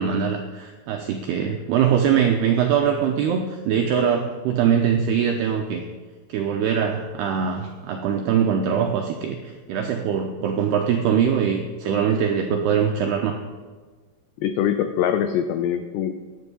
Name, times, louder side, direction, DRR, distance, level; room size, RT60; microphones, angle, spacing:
voice 1, 0.0-5.8 6.3-13.4, right 7 dB, 90° right, 3 dB, 2.3 m, -22 dB
voice 2, 14.4-16.1, left 9 dB, 90° left, 9 dB, 2.4 m, -23 dB
16.5 x 10.5 x 5.5 m, 1.4 s
omnidirectional pair, 5.8 m